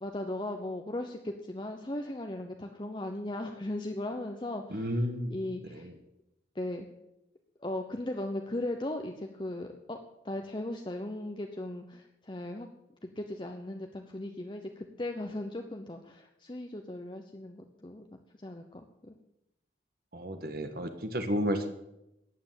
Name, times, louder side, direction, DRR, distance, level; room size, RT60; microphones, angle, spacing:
voice 1, 0.0-5.9 6.5-6.9 7.6-10.0 10.2-12.7 13.0-19.1, left 1 dB, 25° left, 4 dB, 0.9 m, -37 dB
voice 2, 4.7-5.3 20.1-21.7, equal, 55° right, 7 dB, 1.5 m, -31 dB
14.0 x 9.4 x 7.6 m, 0.88 s
head